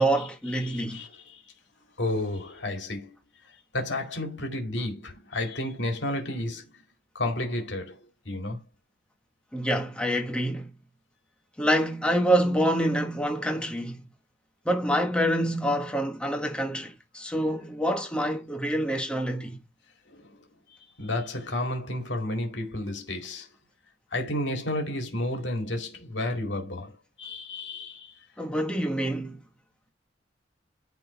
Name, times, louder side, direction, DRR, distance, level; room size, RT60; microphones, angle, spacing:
voice 1, 0.0-1.0 9.5-10.7 11.6-14.0 14.6-19.6 28.4-29.4, equal, 5° left, 1.5 m, -26 dB
voice 2, 0.6-1.4 2.0-3.2 3.5-6.8 7.1-8.6 20.1-23.5 24.1-28.2, left 1 dB, 70° left, 2.2 m, -32 dB
10.0 x 3.8 x 4.2 m
head